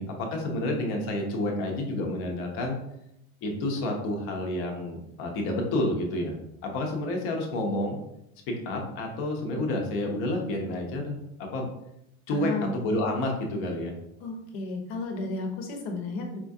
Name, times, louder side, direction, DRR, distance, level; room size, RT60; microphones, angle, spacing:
voice 1, 0.0-2.8 3.4-6.3 6.6-8.0 8.5-11.7 12.3-13.9, left 1 dB, 40° left, 1 dB, 0.7 m, -29 dB
voice 2, 12.3-12.7 14.2-16.4, left 3 dB, 65° left, 3 dB, 0.9 m, -33 dB
4.3 x 2.4 x 2.6 m, 0.82 s
supercardioid pair, 165°, 33 cm